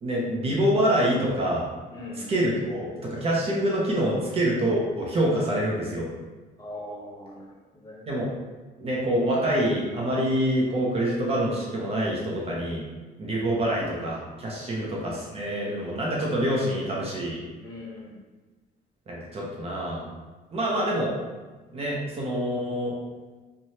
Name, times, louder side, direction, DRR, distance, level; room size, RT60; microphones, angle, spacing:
voice 1, 0.0-1.6 2.1-6.1 8.1-8.3 8.8-12.8 13.2-17.4 19.1-20.1 20.5-21.1 21.7-23.0, right 1 dB, 35° right, -4 dB, 0.7 m, -26 dB
voice 2, 1.9-2.2 6.6-7.4 7.8-8.0 14.6-14.8 17.6-18.1, left 1 dB, 20° left, -6 dB, 0.9 m, -40 dB
3.1 x 2.2 x 2.7 m, 1.3 s
cardioid pair, 110°, 17 cm